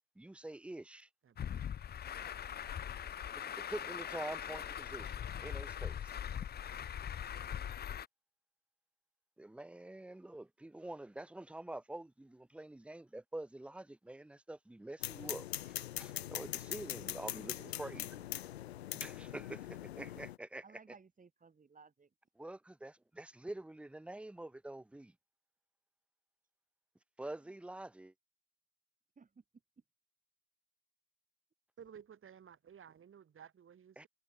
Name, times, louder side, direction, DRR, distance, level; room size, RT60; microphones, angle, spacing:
voice 1, 0.2-1.1 3.3-6.2 9.4-18.2 18.9-20.6 22.4-25.1 27.2-28.1 34.0-34.1, right 1 dB, 5° right, 0.6 m, -47 dB
voice 2, 1.2-1.7 31.8-34.1, right 8 dB, 40° right, 6.4 m, -55 dB
Truck, 1.4-8.1, left 9 dB, 30° left, 0.7 m, -41 dB
sound 1, 15.0-20.4, left 13 dB, 90° left, 0.5 m, -42 dB
voice 3, 20.6-22.1 29.2-29.4, right 5 dB, 25° right, 3.2 m, -58 dB
hypercardioid pair, 60°, 31 cm